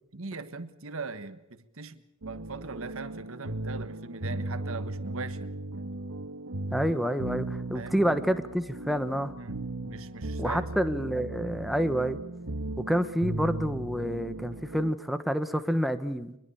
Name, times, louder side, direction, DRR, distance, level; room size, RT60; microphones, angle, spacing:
voice 1, 0.1-5.5 5.7-5.9 7.7-8.0 9.4-10.7, right 3 dB, 65° right, 11 dB, 1.4 m, -40 dB
sound 1, 2.2-14.9, right 2 dB, 80° right, 1.7 m, -37 dB
voice 2, 6.7-9.3 10.4-12.2 12.8-16.4, equal, ahead, 10 dB, 1.2 m, -28 dB
24.0 x 21.5 x 7.1 m, 0.85 s
head